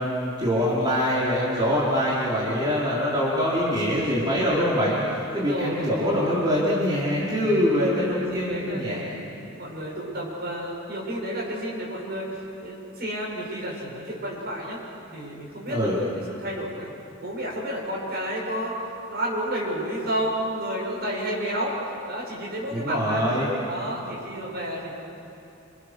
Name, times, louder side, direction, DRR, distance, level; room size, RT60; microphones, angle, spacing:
voice 1, 0.0-9.0 15.7-16.0 22.7-23.5, equal, 20° right, -8 dB, 5.2 m, -24 dB
voice 2, 5.2-6.3 8.1-9.1 9.4-14.8 15.1-16.0 16.3-16.9 17.2-18.8 19.1-21.8 22.1-23.2 23.7-24.9, equal, 50° right, -3 dB, 7.9 m, -31 dB
29.5 x 29.5 x 6.7 m, 2.8 s
head